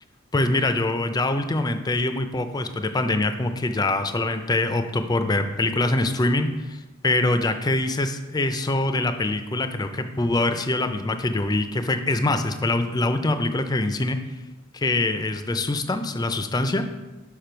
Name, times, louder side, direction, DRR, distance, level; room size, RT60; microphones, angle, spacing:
voice 1, 0.3-14.2 14.7-16.8, left 2 dB, 20° left, 8 dB, 0.4 m, -24 dB
6.7 x 5.5 x 4.4 m, 1.1 s
head